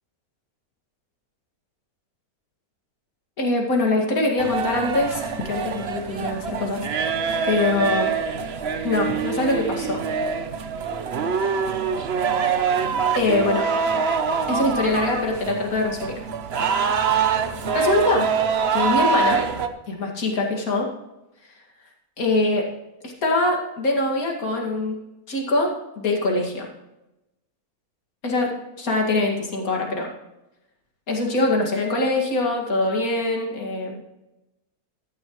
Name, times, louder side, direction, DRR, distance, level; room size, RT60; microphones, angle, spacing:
voice 1, 3.4-6.9 7.4-8.1 8.8-10.0 13.1-13.7 14.5-16.2 17.7-18.3 18.7-19.4 19.9-20.9 22.2-22.7 23.0-25.0 25.3-26.7 28.2-30.1 31.1-34.0, left 2 dB, 70° left, 0 dB, 2.7 m, -23 dB
sound 1, 4.4-19.7, right 6 dB, 50° right, 1.0 m, -24 dB
14.5 x 11.0 x 3.1 m, 0.93 s
omnidirectional pair, 1.5 m